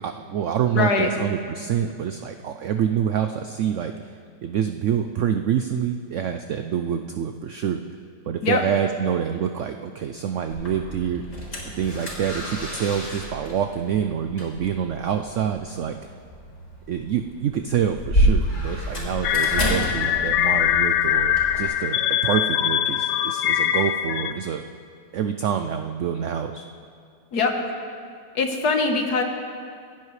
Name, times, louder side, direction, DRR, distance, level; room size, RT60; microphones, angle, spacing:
voice 1, 0.0-3.9 4.4-7.8 8.3-11.2 11.8-16.0 16.9-24.6 25.1-26.7, right 8 dB, 75° right, 7 dB, 0.7 m, -26 dB
voice 2, 0.7-1.1 8.4-8.6 27.3-27.5 28.4-29.2, left 4 dB, 65° left, 3 dB, 1.7 m, -21 dB
sound 1, 10.5-21.6, equal, 45° left, 4.8 m, -29 dB
sound 2, 19.2-24.3, left 11 dB, 85° left, 1.2 m, -22 dB
27.5 x 10.5 x 3.2 m, 2.2 s
omnidirectional pair, 1.8 m